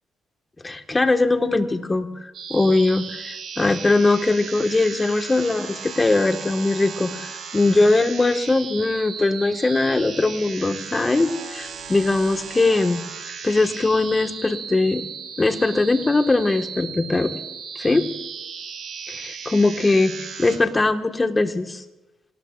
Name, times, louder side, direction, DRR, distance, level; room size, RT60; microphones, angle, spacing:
voice 1, 0.6-2.1 2.5-13.0 13.4-15.0 15.4-17.3 17.7-18.1 19.1-21.8, left 2 dB, 20° left, 6 dB, 1.5 m, -21 dB
sound 1, 2.3-20.6, right 6 dB, 65° right, 3.6 m, -36 dB
26.5 x 19.0 x 2.5 m, 0.96 s
cardioid pair, 90°, 0 cm